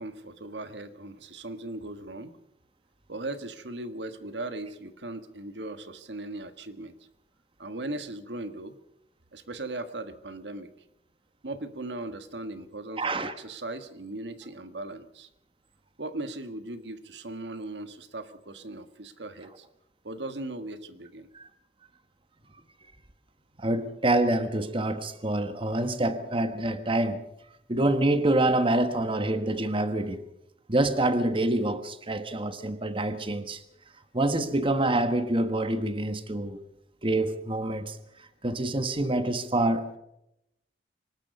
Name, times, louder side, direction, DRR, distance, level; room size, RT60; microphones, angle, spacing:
voice 1, 0.0-2.3 3.1-7.0 7.6-8.8 9.3-10.7 11.4-15.3 16.0-19.7 20.0-21.3, right 2 dB, 85° right, 1.6 m, -38 dB
voice 2, 13.0-13.3 21.3-21.5 23.6-27.3 27.7-30.2 30.7-33.6 34.1-36.6 37.0-38.0 38.4-40.0, right 1 dB, 30° right, 1.4 m, -26 dB
25.0 x 19.5 x 5.4 m
head